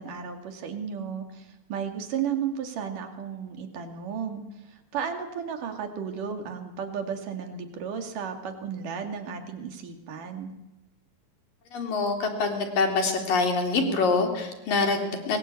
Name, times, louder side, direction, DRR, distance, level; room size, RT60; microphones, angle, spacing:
voice 1, 0.0-10.5, right 7 dB, 60° right, 6 dB, 4.0 m, -34 dB
voice 2, 11.7-15.4, left 3 dB, 65° left, 4 dB, 5.0 m, -25 dB
25.0 x 22.0 x 8.5 m, 1.0 s
omnidirectional pair, 4.3 m